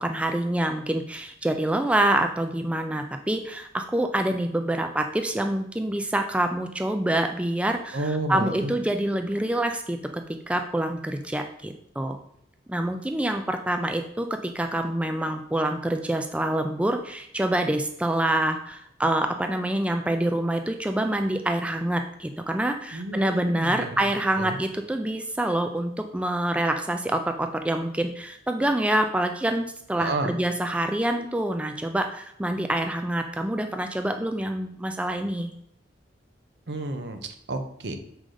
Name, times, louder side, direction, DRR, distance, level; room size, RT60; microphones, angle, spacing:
voice 1, 0.0-8.0 8.3-10.0 10.5-12.2 12.7-14.3 14.5-35.5, right 1 dB, 5° right, 6 dB, 0.3 m, -26 dB
voice 2, 7.9-8.7 22.9-24.6 30.0-30.3 36.7-38.0, right 2 dB, 65° right, 6 dB, 0.8 m, -31 dB
6.4 x 4.8 x 3.9 m, 0.72 s
head